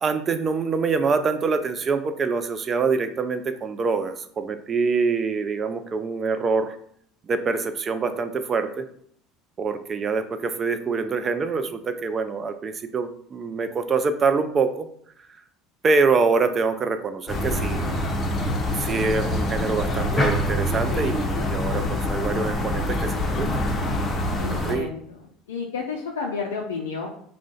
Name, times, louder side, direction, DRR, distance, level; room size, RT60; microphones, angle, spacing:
voice 1, 0.0-6.8 7.3-8.9 9.6-14.9 15.8-17.8 18.8-23.5 24.5-24.9, right 4 dB, 35° right, 10 dB, 0.3 m, -25 dB
sound 1, 17.3-24.8, left 1 dB, 35° left, 0.5 m, -25 dB
voice 2, 24.4-27.1, left 5 dB, 90° left, 0 dB, 0.3 m, -31 dB
2.3 x 2.1 x 3.8 m, 0.65 s
hypercardioid pair, 75°, 0 cm